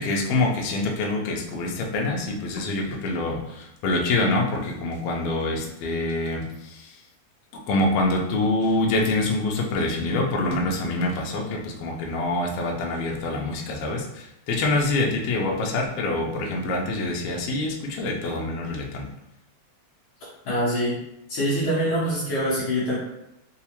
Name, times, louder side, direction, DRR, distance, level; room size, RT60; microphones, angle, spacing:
voice 1, 0.0-7.0 7.7-19.1, left 2 dB, 80° left, 0 dB, 1.3 m, -25 dB
voice 2, 20.4-21.0 21.3-22.9, equal, 65° left, -7 dB, 1.5 m, -24 dB
4.6 x 2.1 x 2.8 m, 0.83 s
omnidirectional pair, 3.3 m